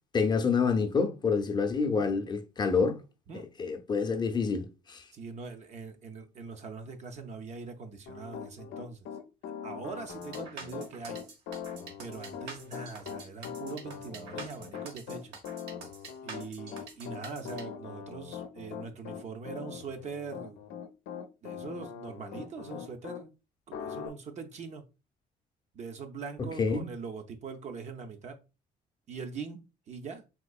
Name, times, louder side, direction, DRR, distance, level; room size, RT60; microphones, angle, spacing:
voice 1, 0.1-3.0 3.3-5.0 26.4-26.9, left 5 dB, 25° left, 0.6 m, -28 dB
voice 2, 5.1-9.1 9.6-11.2 12.0-15.3 16.2-20.6 21.4-23.3 23.7-24.8 25.7-28.4 29.1-29.6 29.9-30.2, right 5 dB, 45° right, 0.5 m, -42 dB
Piano, 8.1-23.2 23.7-24.1, left 7 dB, 90° left, 0.5 m, -41 dB
sound 1, 10.1-17.6, right 4 dB, 90° right, 1.1 m, -46 dB
3.6 x 2.9 x 2.3 m
cardioid pair, 110°, 17 cm